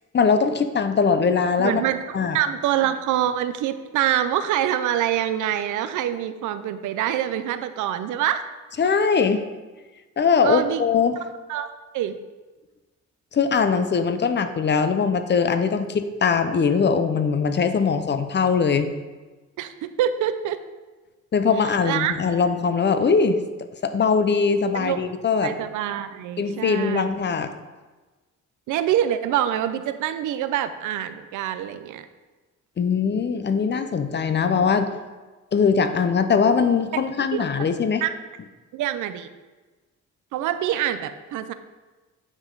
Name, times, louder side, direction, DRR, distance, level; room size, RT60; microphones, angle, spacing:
voice 1, 0.1-1.8 2.1-2.4 8.8-9.4 10.2-11.2 13.3-18.9 21.3-23.4 23.8-25.5 26.4-27.5 32.8-34.9 35.5-38.0, left 5 dB, 35° left, 10 dB, 0.7 m, -21 dB
voice 2, 1.6-8.4 10.4-10.8 11.5-12.2 19.6-20.6 21.8-22.1 24.7-25.2 25.4-27.0 28.7-32.0 37.3-37.5 38.0-38.1 38.7-39.3 40.3-41.5, right 11 dB, 85° right, 11 dB, 0.6 m, -25 dB
9.5 x 5.4 x 3.9 m, 1.2 s
cardioid pair, 90°, 30 cm